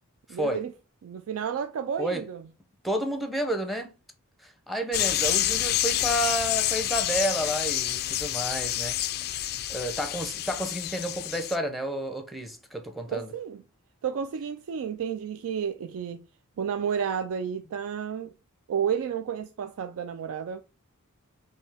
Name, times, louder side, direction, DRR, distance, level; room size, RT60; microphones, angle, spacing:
voice 1, 0.3-0.7 1.0-2.4 13.1-13.6 14.0-16.2 16.6-18.3 18.7-20.6, right 7 dB, 65° right, 0.3 m, -31 dB
voice 2, 2.8-3.9 4.4-9.0 9.7-13.3, right 1 dB, ahead, 0.7 m, -30 dB
sound 1, 4.9-11.6, left 13 dB, 45° left, 0.3 m, -28 dB
5.3 x 2.7 x 3.4 m
head